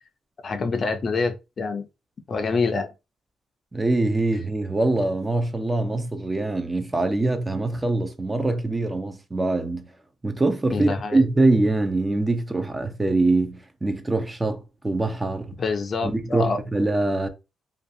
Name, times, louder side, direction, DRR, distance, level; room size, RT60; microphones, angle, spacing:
voice 1, 0.4-1.9 2.3-2.9 10.7-11.3 15.6-16.6, left 4 dB, 45° left, 0.4 m, -26 dB
voice 2, 3.7-9.9 10.2-15.5 16.0-17.3, right 2 dB, 20° right, 0.5 m, -23 dB
2.6 x 2.3 x 2.5 m
cardioid pair, 90°, 0 cm